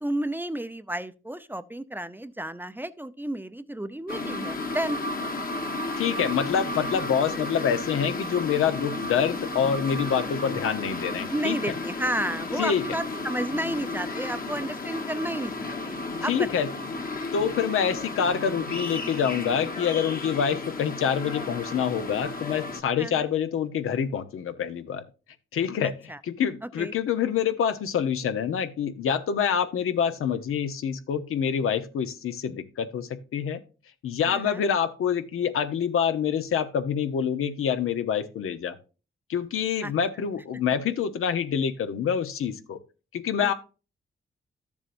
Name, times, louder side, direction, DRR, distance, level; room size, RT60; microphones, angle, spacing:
voice 1, 0.0-5.0 11.3-16.7 23.0-23.1 26.1-26.2 26.8-26.9 34.3-34.6 39.8-39.9 43.4-43.5, right 1 dB, 10° right, 0.5 m, -32 dB
sound 1, 4.1-22.8, left 2 dB, 45° left, 1.2 m, -33 dB
voice 2, 6.0-11.6 12.6-12.9 16.2-16.7 17.3-25.0 25.5-33.6 34.0-38.8 39.3-42.8 43.1-43.5, left 7 dB, 90° left, 0.8 m, -26 dB
12.5 x 7.2 x 2.6 m
cardioid pair, 75°, 21 cm